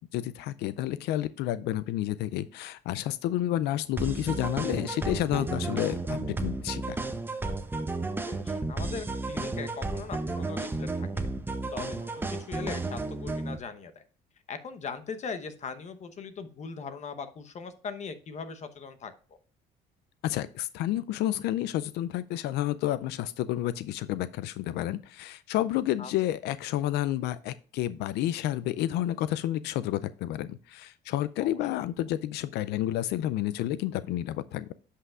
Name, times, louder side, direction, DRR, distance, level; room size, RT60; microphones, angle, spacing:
voice 1, 0.1-7.0 20.2-34.7, left 13 dB, 80° left, 15 dB, 0.4 m, -30 dB
sound 1, 4.0-13.6, right 2 dB, 10° right, 0.7 m, -33 dB
voice 2, 8.1-11.3 11.7-14.0 14.5-19.1 26.0-26.1 31.4-31.5, left 5 dB, 45° left, 10 dB, 1.0 m, -40 dB
11.0 x 5.6 x 2.4 m, 0.40 s
cardioid pair, 110°, 17 cm